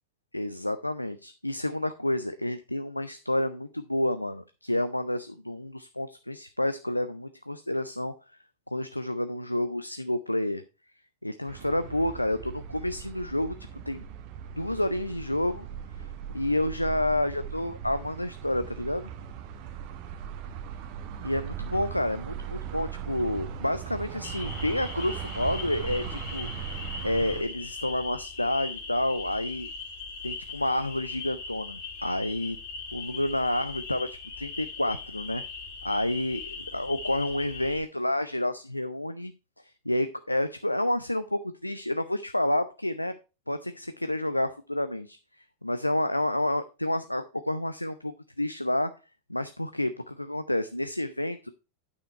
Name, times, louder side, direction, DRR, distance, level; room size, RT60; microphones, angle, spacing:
voice 1, 0.3-8.1 8.7-10.6 11.2-13.5 13.9-14.0 14.5-15.7 16.0-16.1 16.3-19.1 21.2-29.7 30.2-32.6 32.9-35.4 35.8-43.1 43.5-45.2 45.6-48.9 49.3-51.5, left 1 dB, 85° left, 0.4 m, -29 dB
sound 1, 11.5-27.4, right 8 dB, 45° right, 1.1 m, -39 dB
sound 2, 24.2-37.8, left 4 dB, 50° left, 2.4 m, -40 dB
9.1 x 5.7 x 4.3 m
figure-of-eight pair, 90°, 0 cm